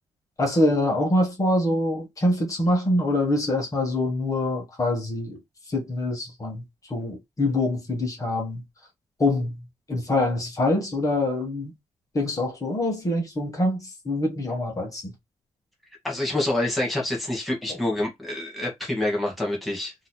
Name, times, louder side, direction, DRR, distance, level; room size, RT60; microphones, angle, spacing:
voice 1, 0.4-5.4 5.7-8.6 9.2-11.7 12.1-15.1, left 1 dB, 25° left, 1.3 m, -25 dB
voice 2, 16.0-19.9, left 1 dB, ahead, 1.3 m, -27 dB
3.9 x 2.8 x 2.2 m
wide cardioid pair, 150°, 12 cm